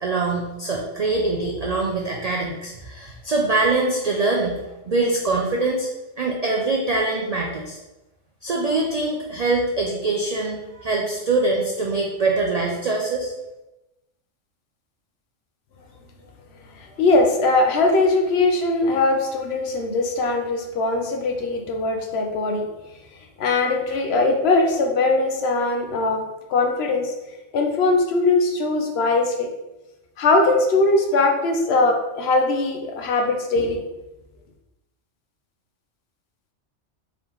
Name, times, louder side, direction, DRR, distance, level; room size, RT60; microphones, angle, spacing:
voice 1, 0.0-4.6 4.9-5.9 6.2-7.8 8.4-13.3, right 3 dB, 85° right, -1 dB, 0.3 m, -23 dB
voice 2, 17.0-22.7 23.4-26.2 26.5-27.1 27.5-29.5 30.2-33.8, left 3 dB, 65° left, 3 dB, 0.8 m, -20 dB
3.8 x 2.8 x 3.4 m, 0.99 s
omnidirectional pair, 1.3 m